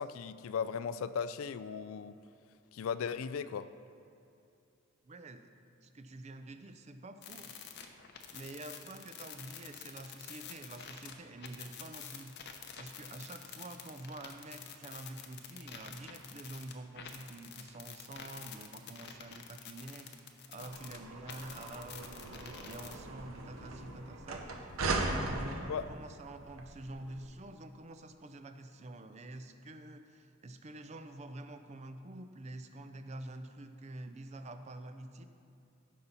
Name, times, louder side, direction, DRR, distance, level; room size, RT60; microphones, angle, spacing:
voice 1, 0.0-2.2 2.7-3.7 25.7-25.8, left 6 dB, 70° left, 14 dB, 0.3 m, -37 dB
voice 2, 5.0-5.5 5.8-7.5 8.3-12.4 12.8-24.6 25.0-35.2, right 2 dB, 30° right, 8 dB, 0.5 m, -47 dB
sound 1, 7.2-11.1 11.4-21.0 21.3-23.0, left 7 dB, 50° left, 0.7 m, -48 dB
sound 2, 20.6-27.2, right 2 dB, 70° right, 0.9 m, -39 dB
15.0 x 5.8 x 4.0 m, 2.6 s
head